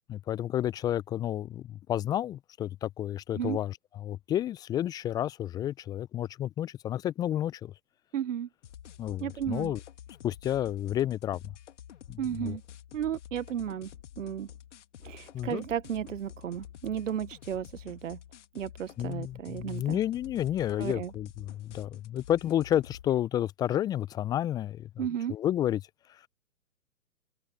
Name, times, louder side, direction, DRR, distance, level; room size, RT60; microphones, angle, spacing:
voice 1, 0.1-7.7 9.0-9.8 10.2-11.5 12.1-12.6 15.3-15.6 19.0-25.0 25.3-25.8 26.1-26.3, left 11 dB, 10° left, 0.7 m, -31 dB
voice 2, 8.1-8.5 9.2-9.7 12.2-12.6 12.9-13.9 14.2-14.5 15.0-18.2 18.5-20.0 20.8-21.1 25.0-25.3, right 9 dB, 55° right, 1.1 m, -34 dB
sound 1, 8.6-23.1, left 10 dB, 50° left, 2.6 m, -49 dB
figure-of-eight pair, 125°, 46 cm